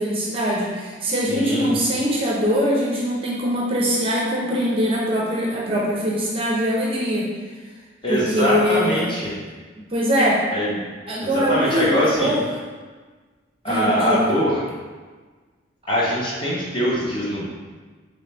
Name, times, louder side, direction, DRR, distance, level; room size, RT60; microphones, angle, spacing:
voice 1, 0.0-7.3 8.1-9.1 9.9-10.4 11.1-12.4 13.7-14.3, equal, 30° right, -4 dB, 0.6 m, -22 dB
voice 2, 1.3-1.7 8.0-9.4 10.5-10.8 11.2-12.3 13.6-14.6 15.9-17.5, equal, 25° left, -6 dB, 0.8 m, -22 dB
4.0 x 3.1 x 3.3 m, 1.4 s
head